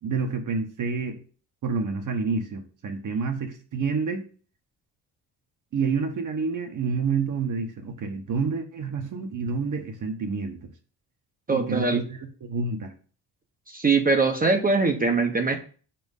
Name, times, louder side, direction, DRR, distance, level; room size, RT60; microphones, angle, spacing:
voice 1, 0.0-1.2 1.6-4.2 5.7-10.6 11.5-12.9, right 4 dB, 50° right, 4 dB, 1.2 m, -28 dB
voice 2, 11.5-12.0 13.7-15.6, right 4 dB, 20° right, 4 dB, 0.8 m, -22 dB
6.1 x 4.4 x 5.4 m, 0.39 s
cardioid pair, 140°, 39 cm